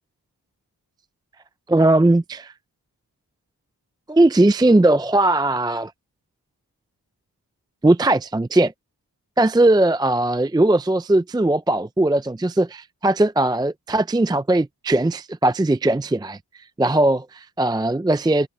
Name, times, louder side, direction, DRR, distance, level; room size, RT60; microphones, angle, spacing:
voice 1, 1.7-2.5 4.1-5.9 7.8-8.7 9.4-16.4 16.8-18.5, right 2 dB, 10° right, 0.5 m, -19 dB
cardioid pair, 45°, 40 cm